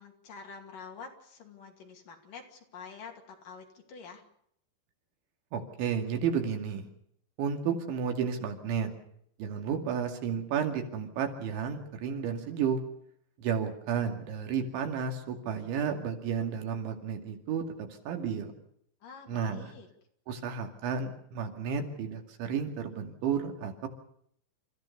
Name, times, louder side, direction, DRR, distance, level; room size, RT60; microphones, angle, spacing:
voice 1, 0.0-4.2 19.0-19.9, left 5 dB, 50° left, 3 dB, 3.8 m, -47 dB
voice 2, 5.5-6.9 7.4-8.9 9.4-12.8 13.4-17.6 18.1-18.5 19.3-19.7 20.3-23.9, right 7 dB, 90° right, 5 dB, 4.8 m, -32 dB
30.0 x 15.0 x 6.9 m, 0.69 s
omnidirectional pair, 5.2 m